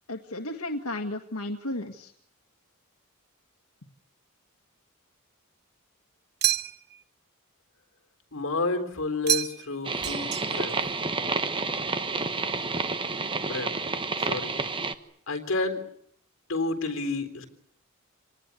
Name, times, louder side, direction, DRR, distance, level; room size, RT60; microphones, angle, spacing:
voice 1, 0.1-2.1, left 1 dB, 85° left, 4 dB, 1.8 m, -33 dB
sound 1, 6.4-7.0 9.3-9.8 10.0-10.8, right 13 dB, 50° right, 1.0 m, -28 dB
voice 2, 8.3-10.7 13.5-13.7 14.2-14.6 15.3-15.8 16.5-17.5, left 3 dB, 60° left, 6 dB, 3.7 m, -30 dB
sound 2, 9.8-14.9, right 3 dB, 25° right, 1.2 m, -29 dB
26.5 x 19.5 x 9.7 m, 0.68 s
head